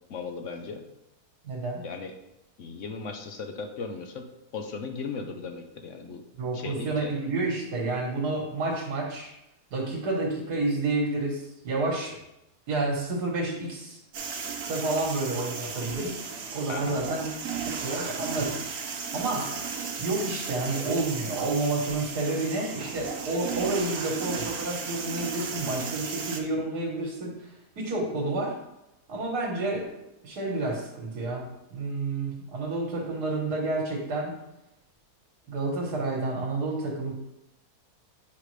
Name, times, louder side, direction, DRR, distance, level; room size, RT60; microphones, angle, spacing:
voice 1, 0.1-0.8 1.8-2.1 2.6-4.2 4.5-6.2 6.5-7.1 16.7-17.0, left 4 dB, 60° left, 5 dB, 0.9 m, -37 dB
voice 2, 1.4-1.8 6.4-9.3 9.7-12.2 12.7-14.0 14.7-17.3 17.8-18.7 19.1-19.5 20.0-28.6 29.1-34.4 35.5-37.1, right 2 dB, 75° right, -2 dB, 1.8 m, -30 dB
sound 1, 14.1-26.4, right 5 dB, 60° right, 1.2 m, -35 dB
8.4 x 5.0 x 3.2 m, 0.88 s
omnidirectional pair, 1.7 m